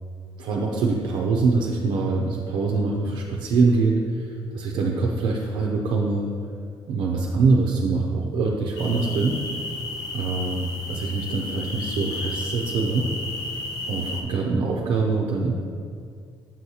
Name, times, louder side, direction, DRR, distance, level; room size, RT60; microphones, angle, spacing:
voice 1, 0.4-6.2 6.9-9.4 10.1-13.1 13.9-15.5, right 3 dB, 60° right, -1 dB, 0.6 m, -24 dB
sound 1, 8.8-14.2, left 2 dB, 50° left, 0.8 m, -33 dB
7.5 x 6.3 x 2.8 m, 2.2 s
cardioid pair, 175°, 9 cm